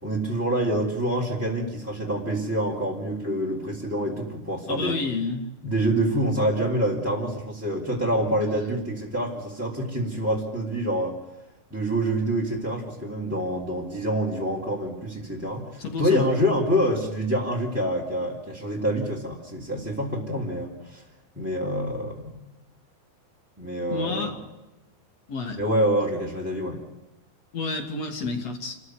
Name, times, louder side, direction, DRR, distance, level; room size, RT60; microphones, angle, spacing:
voice 1, 0.0-5.0 5.6-11.2 11.7-21.0 21.3-22.4 23.6-24.4 25.6-26.8, equal, 5° right, -3 dB, 3.0 m, -26 dB
voice 2, 4.7-5.5 15.8-16.2 23.9-24.3 25.3-25.6 27.5-28.8, left 3 dB, 50° left, 5 dB, 3.5 m, -30 dB
29.0 x 14.5 x 9.5 m, 0.99 s
omnidirectional pair, 4.1 m